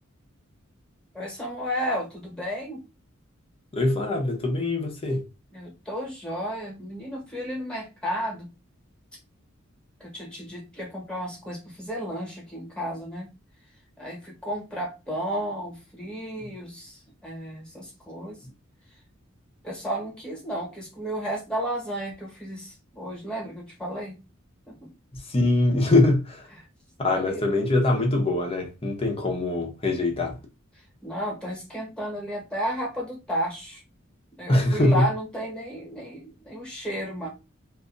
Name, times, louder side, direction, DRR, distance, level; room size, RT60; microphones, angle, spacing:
voice 1, 1.1-2.8 5.5-8.5 10.0-13.3 14.0-18.4 19.6-24.2 24.7-24.9 27.0-27.5 31.0-33.8 34.4-37.3, equal, 5° left, 1.4 m, -33 dB
voice 2, 3.7-5.3 25.1-26.5 27.0-30.4 34.5-35.0, left 2 dB, 30° left, 0.9 m, -23 dB
2.7 x 2.6 x 3.8 m
head